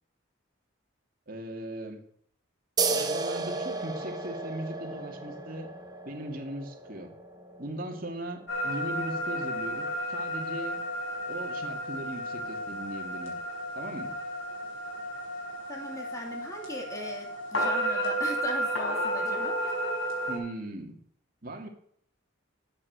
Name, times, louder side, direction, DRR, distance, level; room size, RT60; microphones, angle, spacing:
voice 1, 1.3-2.0 2.9-5.7 6.0-7.1 7.6-10.8 11.3-13.4 13.7-14.1 20.3-21.0 21.4-21.7, right 1 dB, 45° right, 3 dB, 2.6 m, -38 dB
sound 1, 2.8-9.9, right 4 dB, 20° right, 1.2 m, -35 dB
sound 2, 8.5-20.4, equal, 75° left, 5.4 m, -32 dB
voice 2, 15.7-19.7, left 1 dB, 15° left, 0 dB, 3.2 m, -39 dB
13.0 x 8.8 x 6.4 m, 0.64 s
head